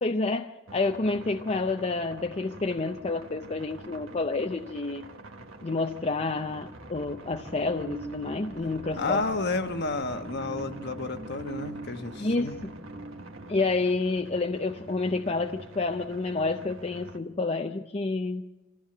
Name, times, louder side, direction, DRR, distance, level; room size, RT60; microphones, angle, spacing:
voice 1, 0.0-5.0 5.6-9.2 12.2-12.7 13.5-18.4, left 3 dB, 30° left, 0.6 m, -29 dB
sound 1, 0.7-17.2, right 2 dB, 70° right, 1.6 m, -47 dB
sound 2, 6.6-15.6, right 1 dB, 45° right, 2.6 m, -44 dB
voice 2, 8.9-12.6, left 3 dB, 55° left, 1.3 m, -31 dB
26.5 x 15.0 x 7.8 m
head